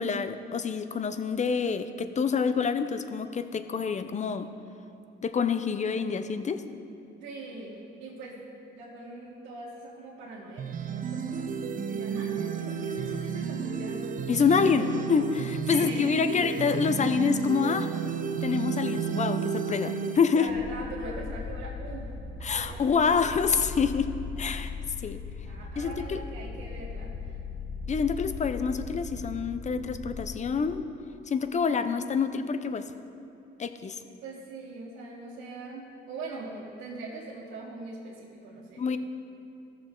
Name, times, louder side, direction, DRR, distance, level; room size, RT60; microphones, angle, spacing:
voice 1, 0.0-4.5 5.2-6.6 14.3-17.9 18.4-20.5 22.4-24.1 24.4-24.7 25.0-25.2 25.8-26.2 27.9-30.8 31.3-32.8 33.6-34.0 38.8-39.0, left 6 dB, 35° left, 10 dB, 0.6 m, -27 dB
voice 2, 7.2-8.4 8.7-11.6 11.9-14.2 14.6-15.2 15.7-16.4 20.3-22.1 22.5-23.3 25.4-27.4 34.2-39.0, right 3 dB, 80° right, -7 dB, 1.6 m, -41 dB
sound 1, 10.6-20.2, right 7 dB, 45° right, 0.6 m, -32 dB
Spaceship Engine - just noise, 20.5-30.3, left 4 dB, 65° left, 1.7 m, -38 dB
14.5 x 6.8 x 3.8 m, 2.8 s
cardioid pair, 90°, 20 cm